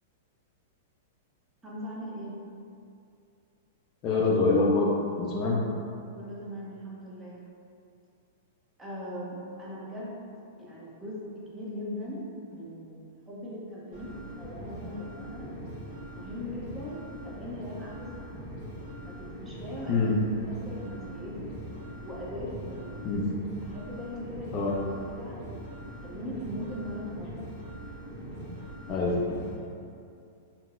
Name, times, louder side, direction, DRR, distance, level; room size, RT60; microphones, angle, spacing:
voice 1, 1.6-2.5 6.2-7.4 8.8-10.3 10.6-13.0 13.3-15.5 16.1-18.4 19.0-21.5 22.0-23.0 23.6-24.8 25.1-25.4 26.0-27.5, equal, 10° right, -7 dB, 0.6 m, -40 dB
voice 2, 4.0-4.9 5.2-5.6 19.9-20.2 23.0-23.2 24.5-24.7 28.9-29.2, left 3 dB, 35° left, -3 dB, 0.4 m, -25 dB
sound 1, 13.9-29.5, right 1 dB, 40° right, 1.2 m, -42 dB
3.7 x 2.0 x 2.4 m, 2.5 s
hypercardioid pair, 135°, 0 cm